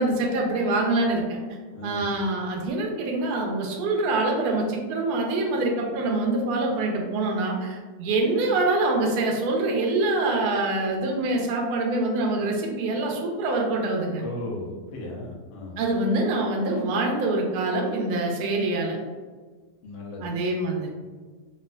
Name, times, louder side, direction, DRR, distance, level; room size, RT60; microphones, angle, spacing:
voice 1, 0.0-1.4 1.8-14.2 15.8-19.0 20.2-20.9, right 2 dB, 70° right, 0 dB, 1.0 m, -25 dB
voice 2, 1.7-2.1 14.2-15.8 19.8-20.4, left 1 dB, 90° left, -3 dB, 0.5 m, -36 dB
3.3 x 2.4 x 2.2 m, 1.4 s
omnidirectional pair, 1.9 m